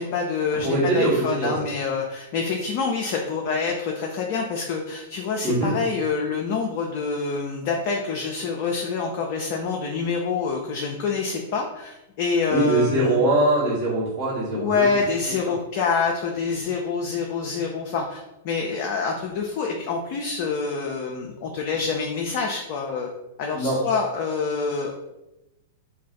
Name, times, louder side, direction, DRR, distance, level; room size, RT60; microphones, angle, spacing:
voice 1, 0.0-13.2 14.5-23.1 23.4-25.0, left 5 dB, 45° left, 0 dB, 0.4 m, -26 dB
voice 2, 0.5-1.7 5.4-5.7 12.5-14.9 15.4-15.5 23.5-23.8, right 2 dB, 35° right, -8 dB, 1.1 m, -22 dB
2.4 x 2.3 x 3.9 m, 0.95 s
figure-of-eight pair, 100°, 0 cm